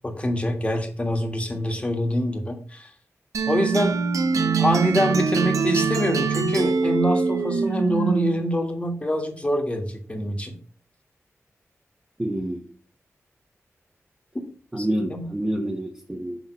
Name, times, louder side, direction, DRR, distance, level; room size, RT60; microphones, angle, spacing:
voice 1, 0.0-2.9 3.5-4.0 4.6-10.5 14.8-14.9 15.1-15.3, equal, 25° left, 3 dB, 1.6 m, -25 dB
sound 1, 3.3-8.5, right 5 dB, 85° right, 0.6 m, -23 dB
voice 2, 12.2-12.6 14.7-16.4, right 1 dB, 15° right, -1 dB, 1.1 m, -27 dB
6.4 x 3.4 x 5.5 m, 0.42 s
cardioid pair, 65°, 5 cm